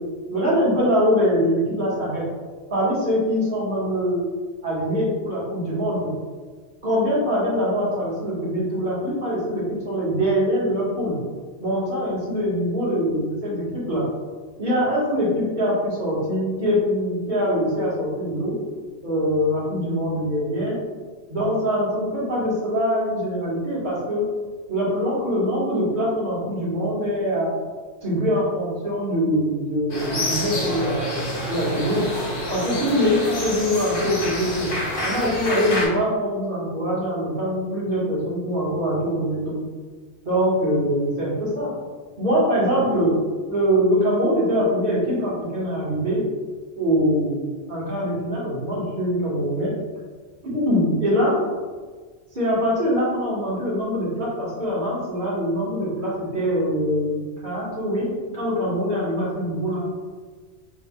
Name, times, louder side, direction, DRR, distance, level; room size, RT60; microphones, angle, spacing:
voice 1, 0.0-2.2 2.7-4.2 4.6-6.1 6.8-11.2 11.6-14.0 14.6-18.5 19.0-20.8 21.3-24.2 24.7-27.6 28.0-31.2 31.5-32.0 32.5-34.7 35.0-39.6 40.2-41.7 42.2-43.1 43.5-46.2 46.8-49.7 50.4-51.4 52.3-58.1 58.3-59.8, equal, 45° right, -8 dB, 1.8 m, -23 dB
sound 1, 29.9-35.9, left 1 dB, 50° left, 1.2 m, -28 dB
5.4 x 3.5 x 2.3 m, 1.5 s
omnidirectional pair, 1.2 m